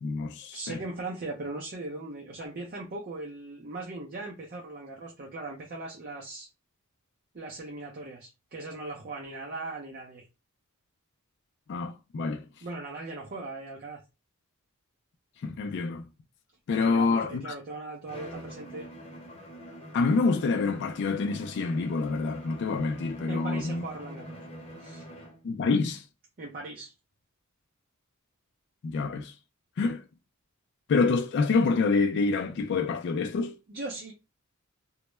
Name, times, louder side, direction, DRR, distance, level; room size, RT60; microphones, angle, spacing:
voice 1, 0.0-0.8 11.7-12.5 15.4-16.1 16.7-17.5 19.9-23.8 25.4-26.1 28.8-29.3 29.8-30.0 30.9-33.5, left 4 dB, 55° left, 0.3 m, -27 dB
voice 2, 0.5-6.5 7.3-10.3 12.6-14.0 16.8-18.9 23.3-24.4 24.8-25.1 26.4-26.9 33.7-34.1, right 2 dB, 45° right, 0.5 m, -39 dB
Bowed string instrument, 18.1-25.5, equal, 30° left, 0.7 m, -45 dB
2.2 x 2.0 x 3.0 m
head